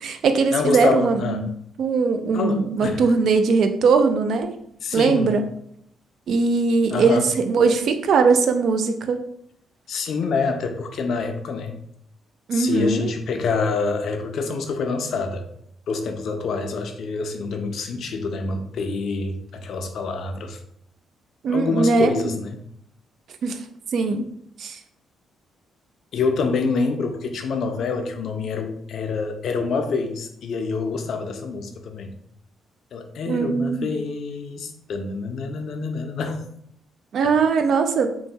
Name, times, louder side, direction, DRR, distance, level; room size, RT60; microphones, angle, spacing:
voice 1, 0.0-1.5 1.8-4.5 4.9-5.5 6.3-9.2 12.5-13.1 21.4-22.3 23.4-23.6 23.9-24.2 24.6-24.8 33.3-33.9 37.1-38.1, right 4 dB, 65° right, 7 dB, 0.3 m, -20 dB
voice 2, 0.5-1.4 2.3-3.0 4.8-5.4 6.9-7.3 9.9-11.8 12.5-15.4 15.9-20.6 21.5-22.6 26.1-32.1 32.9-36.4, left 4 dB, 65° left, 5 dB, 0.4 m, -26 dB
3.1 x 2.1 x 2.7 m, 0.70 s
cardioid pair, 90°, 0 cm